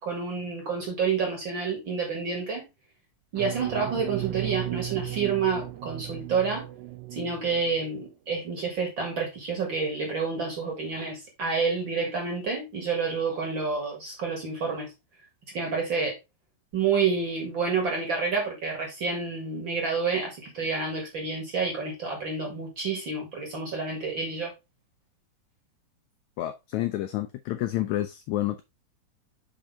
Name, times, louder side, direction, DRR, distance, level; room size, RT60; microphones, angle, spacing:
voice 1, 0.0-2.6 3.3-6.7 7.1-14.9 15.5-16.2 16.7-24.5, right 5 dB, 45° right, 1.8 m, -29 dB
sound 1, 3.4-7.9, right 17 dB, 80° right, 1.6 m, -35 dB
voice 2, 26.4-28.6, left 14 dB, 85° left, 1.6 m, -29 dB
6.1 x 5.1 x 3.4 m
omnidirectional pair, 4.0 m